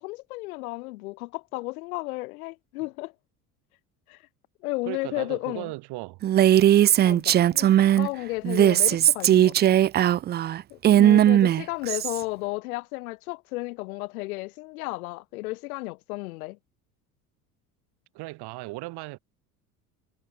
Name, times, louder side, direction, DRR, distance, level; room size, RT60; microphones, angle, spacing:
voice 1, 0.0-3.1 4.1-4.2 4.6-5.7 7.0-9.8 10.7-16.6, left 22 dB, 70° left, 5.0 m, -33 dB
voice 2, 4.8-6.2 18.1-19.2, right 22 dB, 60° right, 5.4 m, -36 dB
Female speech woman speaking, 6.2-8.1 8.4-12.2, right 12 dB, 25° right, 0.4 m, -19 dB
hypercardioid pair, 70°, 44 cm